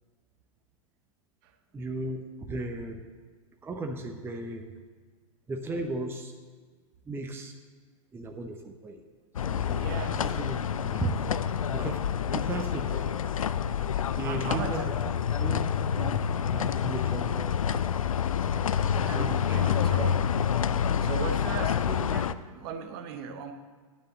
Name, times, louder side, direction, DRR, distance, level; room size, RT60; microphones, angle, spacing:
voice 1, 1.7-3.0 3.6-4.7 5.5-6.3 7.0-7.5 8.1-9.0 9.4-9.9 10.1-11.3 11.7-13.2 14.1-15.0 15.4-15.7 16.5-17.5 18.5-18.7 19.1-19.9, right 2 dB, 15° right, 4 dB, 0.8 m, -36 dB
sound 1, 9.4-22.3, left 8 dB, 70° left, 0.4 m, -28 dB
voice 2, 9.7-10.4 13.8-14.9 16.0-16.2 19.0-20.3 21.0-23.5, right 7 dB, 45° right, 7 dB, 0.9 m, -38 dB
10.0 x 6.6 x 6.9 m, 1.5 s
figure-of-eight pair, 95°, 18 cm